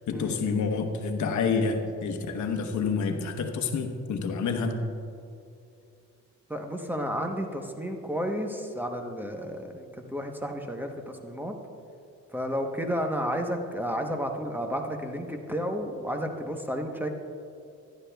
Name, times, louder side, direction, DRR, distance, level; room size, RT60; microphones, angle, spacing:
voice 1, 0.1-4.8, left 5 dB, 70° left, 5 dB, 1.1 m, -28 dB
voice 2, 6.5-11.5 12.3-17.1, equal, 5° right, 3 dB, 0.9 m, -32 dB
16.5 x 11.5 x 2.3 m, 2.5 s
cardioid pair, 90°, 30 cm